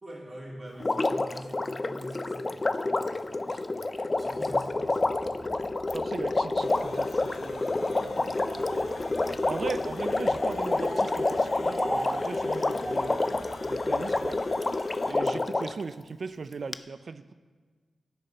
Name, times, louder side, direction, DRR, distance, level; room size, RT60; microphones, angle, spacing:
voice 1, 0.0-5.2 15.2-15.5, equal, 30° right, -3 dB, 2.8 m, -45 dB
Water, 0.8-15.8 16.7-16.8, left 2 dB, 30° left, 0.4 m, -28 dB
sound 1, 3.9-14.4, right 1 dB, 10° right, 1.5 m, -42 dB
voice 2, 5.9-8.8 9.3-14.4 15.0-17.3, right 4 dB, 55° right, 13 dB, 0.4 m, -39 dB
sound 2, 6.6-15.1, left 3 dB, 65° left, 0.8 m, -46 dB
16.0 x 8.8 x 4.1 m, 1.5 s
wide cardioid pair, 100°, 0 cm